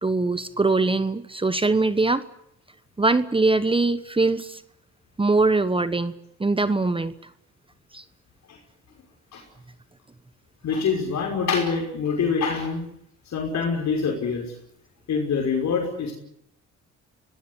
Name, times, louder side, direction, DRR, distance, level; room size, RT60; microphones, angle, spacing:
voice 1, 0.0-2.2 3.0-4.6 5.2-6.1 6.4-7.1 7.9-8.0, right 3 dB, 15° right, 14 dB, 1.2 m, -22 dB
voice 2, 10.6-12.9 13.3-14.5 15.1-16.1, left 5 dB, 65° left, 1 dB, 5.8 m, -25 dB
24.0 x 18.5 x 10.0 m, 0.75 s
cardioid pair, 90°, 30 cm